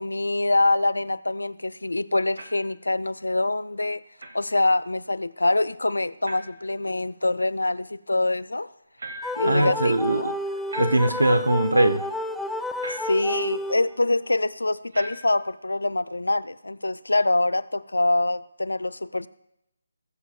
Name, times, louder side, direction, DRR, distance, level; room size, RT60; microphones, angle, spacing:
voice 1, 0.0-4.0 4.3-8.7 9.4-10.3 13.0-19.3, left 2 dB, 75° left, 17 dB, 0.5 m, -25 dB
sound 1, 2.4-2.7 4.2-4.4 6.2-6.7 9.0-9.6 10.7-11.3 12.8-13.3 14.9-15.5, right 1 dB, 60° right, 1.3 m, -39 dB
sound 2, 9.2-14.1, left 1 dB, ahead, 0.3 m, -31 dB
voice 2, 9.4-10.3 10.8-12.0, right 1 dB, 80° right, 10 dB, 1.0 m, -21 dB
20.5 x 7.2 x 2.5 m, 0.83 s
figure-of-eight pair, 150°, 0 cm